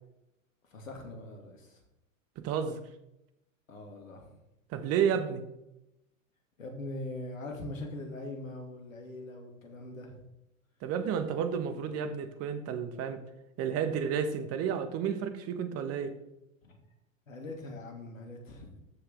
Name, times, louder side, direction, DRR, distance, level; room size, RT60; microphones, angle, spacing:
voice 1, 0.6-1.8 3.7-4.4 6.6-10.2 11.7-11.9 16.6-16.8 17.3-18.8, left 2 dB, 75° left, 2 dB, 2.6 m, -42 dB
voice 2, 2.4-2.8 4.7-5.4 10.8-13.2 13.6-16.2, right 7 dB, 35° right, 9 dB, 1.4 m, -31 dB
14.0 x 6.5 x 3.6 m, 0.88 s
figure-of-eight pair, 90°, 40 cm